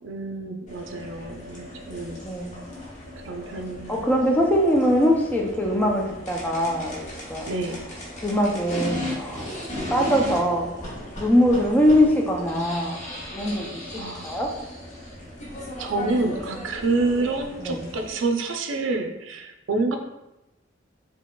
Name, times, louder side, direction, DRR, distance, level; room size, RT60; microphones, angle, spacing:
voice 1, 0.0-2.2 3.2-4.0 7.5-7.9 13.9-14.4 15.8-20.0, right 3 dB, 75° right, 5 dB, 0.5 m, -28 dB
sound 1, 0.7-18.1, left 1 dB, 40° left, 0.8 m, -36 dB
voice 2, 2.2-2.5 3.9-7.5 8.2-9.4 9.9-10.7 11.2-14.5 17.6-17.8, equal, 10° left, 0 dB, 0.5 m, -22 dB
4.7 x 2.8 x 2.3 m, 0.95 s
head